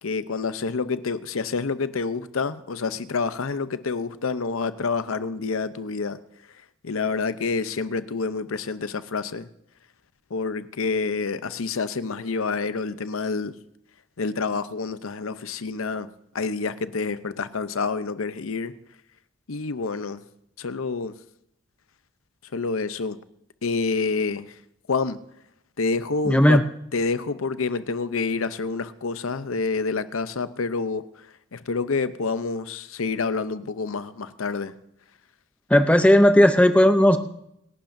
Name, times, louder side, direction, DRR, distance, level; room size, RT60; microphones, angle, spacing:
voice 1, 0.0-6.2 6.8-9.5 10.3-13.6 14.2-16.1 16.3-18.7 19.5-20.2 20.6-21.2 22.5-23.2 23.6-24.6 24.9-25.2 25.8-26.6 26.9-31.3 31.5-34.7, left 4 dB, 80° left, 13 dB, 0.7 m, -28 dB
voice 2, 26.2-26.6 35.7-37.2, equal, 5° left, 9 dB, 0.6 m, -15 dB
26.5 x 11.5 x 2.7 m, 0.76 s
head